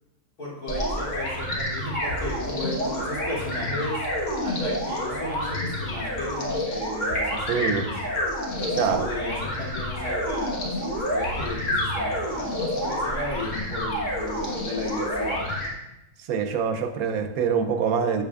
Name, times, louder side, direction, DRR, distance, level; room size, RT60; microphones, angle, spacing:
voice 1, 0.4-4.0 4.4-7.9 8.6-15.4, left 1 dB, 75° left, -9 dB, 3.4 m, -34 dB
sound 1, 0.7-15.7, left 1 dB, 55° left, 1.6 m, -28 dB
voice 2, 7.5-7.9 8.7-9.1 16.2-18.2, right 6 dB, 75° right, 7 dB, 1.0 m, -25 dB
8.4 x 7.2 x 2.3 m, 0.96 s
omnidirectional pair, 1.6 m